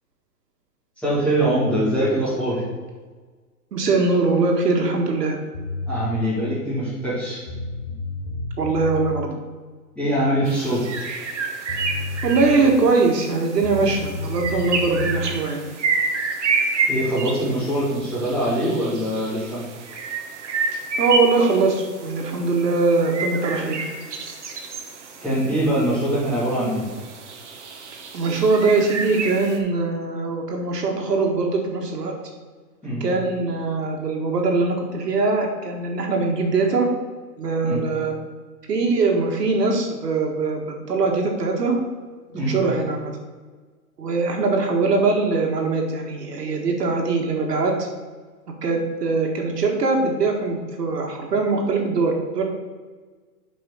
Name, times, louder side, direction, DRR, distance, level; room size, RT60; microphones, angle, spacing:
voice 1, 1.0-2.6 5.9-7.4 9.9-10.8 16.9-19.6 25.2-26.9 32.8-33.0 37.6-37.8 42.3-42.6, right 1 dB, 5° left, -12 dB, 2.4 m, -23 dB
voice 2, 3.7-5.4 8.6-9.3 12.2-15.6 20.7-23.9 28.1-32.1 33.0-36.9 37.4-38.2 38.7-41.8 42.3-43.1 44.0-47.7 48.6-52.4, right 3 dB, 75° right, 1 dB, 1.9 m, -22 dB
sound 1, 5.5-6.1 7.1-7.2 7.5-9.2 11.3-11.4 11.7-12.9 13.6-15.3, left 3 dB, 35° left, 0.9 m, -30 dB
sound 2, 10.5-29.6, right 4 dB, 45° right, 1.1 m, -29 dB
6.2 x 5.1 x 6.3 m, 1.4 s
hypercardioid pair, 170°, 48 cm